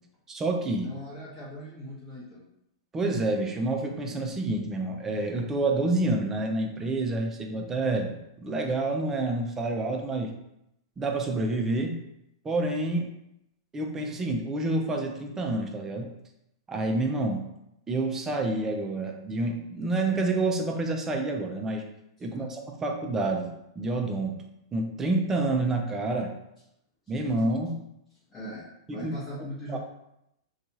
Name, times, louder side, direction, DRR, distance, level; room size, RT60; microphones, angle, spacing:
voice 1, 0.3-0.9 2.9-10.3 11.0-12.0 12.4-13.1 13.7-16.1 16.7-17.5 17.9-21.9 22.2-24.4 24.7-26.3 27.1-27.8 28.9-29.1 29.7-29.8, right 2 dB, 20° right, 3 dB, 0.4 m, -28 dB
voice 2, 0.8-2.5 22.2-22.5 28.3-28.6 28.9-29.8, left 1 dB, 20° left, -8 dB, 0.9 m, -40 dB
2.6 x 2.3 x 2.7 m, 0.82 s
hypercardioid pair, 110°, 2 cm